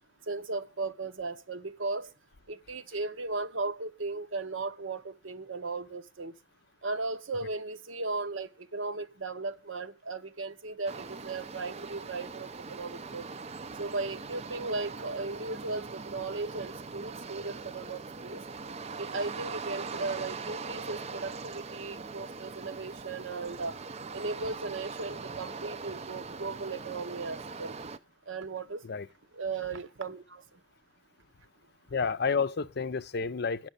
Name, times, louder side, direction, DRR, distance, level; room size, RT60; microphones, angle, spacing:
voice 1, 0.3-2.1 2.5-6.3 6.8-13.2 13.8-18.4 19.0-23.8 24.1-27.8 28.3-28.8 29.3-30.4, right 3 dB, 70° right, 0.9 m, -36 dB
sound 1, 10.9-28.0, right 4 dB, 30° right, 0.5 m, -41 dB
voice 2, 31.9-33.7, left 5 dB, 55° left, 0.6 m, -30 dB
10.5 x 6.1 x 8.1 m
head